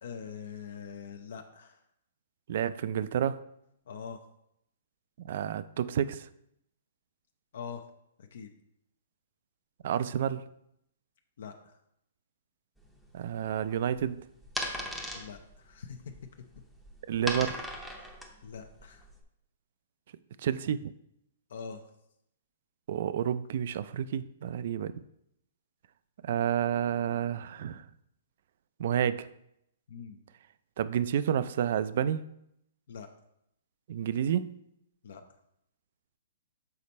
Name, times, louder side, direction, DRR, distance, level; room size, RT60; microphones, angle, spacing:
voice 1, 0.0-1.8 3.9-4.2 7.5-7.8 8.2-8.5 11.4-11.8 15.1-16.0 18.0-18.1 18.4-19.0 21.5-21.8 29.9-30.2 32.9-33.1 35.0-35.2, left 6 dB, 65° left, 5 dB, 0.6 m, -43 dB
voice 2, 2.5-3.4 5.2-6.3 9.8-10.4 13.1-14.2 17.1-17.7 20.4-20.9 22.9-24.9 26.2-27.8 28.8-29.3 30.8-32.2 33.9-34.6, right 9 dB, 50° right, 15 dB, 0.3 m, -30 dB
sound 1, 12.8-19.2, equal, ahead, 0.6 m, -39 dB
6.8 x 4.3 x 4.1 m, 0.78 s
hypercardioid pair, 165°, 0 cm